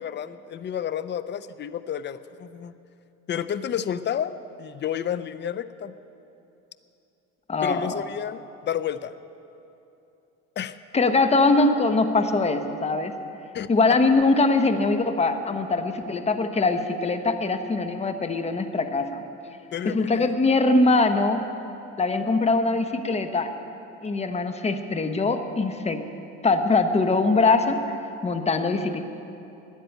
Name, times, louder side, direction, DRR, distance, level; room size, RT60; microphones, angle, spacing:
voice 1, 0.0-2.7 3.3-4.3 4.6-5.9 7.6-9.1 10.6-10.8 13.5-13.7 19.7-20.3, left 9 dB, 35° left, 13 dB, 0.6 m, -31 dB
voice 2, 7.5-7.9 10.9-13.1 13.7-19.2 19.8-21.4 22.0-23.5 24.0-26.0 26.4-28.0 28.2-29.0, left 3 dB, 20° left, 8 dB, 1.1 m, -22 dB
13.0 x 10.0 x 9.3 m, 2.8 s
cardioid pair, 105°, 31 cm